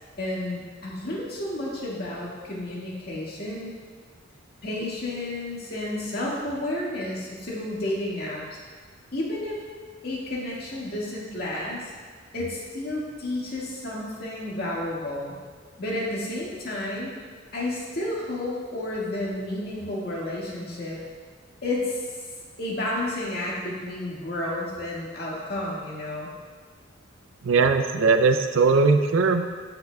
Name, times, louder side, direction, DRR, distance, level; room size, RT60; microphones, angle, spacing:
voice 1, 0.2-3.7 4.6-8.6 9.1-9.6 10.0-11.9 12.3-15.4 15.8-17.1 17.5-21.0 21.6-22.1 22.6-26.3, left 1 dB, 50° left, -5 dB, 1.8 m, -31 dB
voice 2, 27.4-29.4, right 4 dB, 80° right, 7 dB, 0.5 m, -19 dB
13.5 x 5.9 x 2.3 m, 1.5 s
head